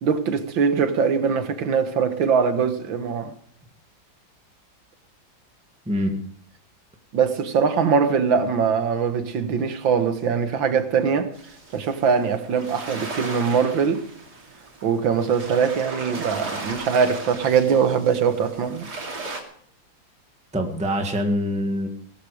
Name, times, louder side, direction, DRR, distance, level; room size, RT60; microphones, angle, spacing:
voice 1, 0.0-3.3 7.1-11.3 11.7-14.0 14.8-18.9, right 6 dB, 80° right, 2.1 m, -22 dB
voice 2, 5.9-6.2 20.5-21.9, equal, 5° right, 1.7 m, -24 dB
sound 1, 11.3-19.4, right 3 dB, 55° right, 3.5 m, -36 dB
18.5 x 13.0 x 5.0 m
omnidirectional pair, 2.0 m